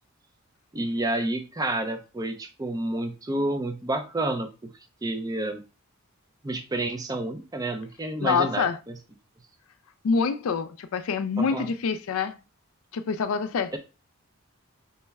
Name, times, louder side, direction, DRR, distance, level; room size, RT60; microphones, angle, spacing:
voice 1, 0.7-4.7 5.0-5.6 6.4-9.0 11.4-11.7 13.7-13.8, right 2 dB, 15° right, 0.4 m, -29 dB
voice 2, 8.2-8.8 10.0-12.4 12.9-13.7, left 5 dB, 70° left, 0.4 m, -26 dB
5.3 x 2.1 x 3.4 m
head